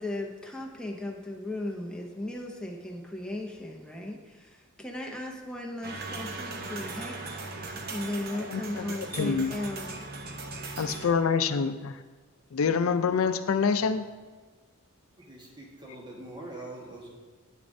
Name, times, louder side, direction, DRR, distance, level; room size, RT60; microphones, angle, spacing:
voice 1, 0.0-7.2 7.5-10.0, left 1 dB, 5° left, 0 dB, 0.6 m, -36 dB
sound 1, 5.8-11.1, right 3 dB, 50° right, 0.7 m, -38 dB
voice 2, 8.3-9.5 10.8-12.0 12.5-14.1, left 5 dB, 70° left, 11 dB, 0.4 m, -27 dB
voice 3, 15.2-17.1, right 1 dB, 20° right, -2 dB, 1.3 m, -43 dB
9.2 x 6.5 x 2.6 m, 1.4 s
head